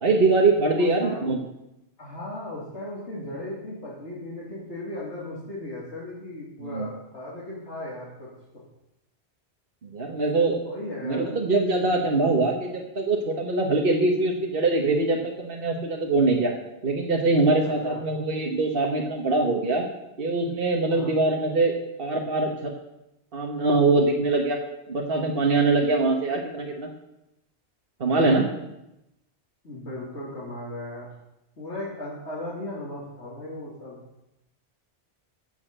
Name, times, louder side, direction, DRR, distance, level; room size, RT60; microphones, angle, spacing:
voice 1, 0.0-1.4 6.6-6.9 9.8-10.6 11.0-16.5 16.8-19.8 20.2-21.7 22.0-22.7 23.3-24.6 24.9-26.9 28.0-28.4, right 3 dB, 55° right, 0 dB, 1.5 m, -23 dB
voice 2, 0.8-1.3 2.0-8.3 10.6-11.2 17.6-18.0 20.9-21.1 28.1-28.5 29.6-31.1 31.6-34.0, left 1 dB, 85° left, -7 dB, 3.1 m, -36 dB
15.0 x 7.1 x 6.7 m, 0.90 s
omnidirectional pair, 1.1 m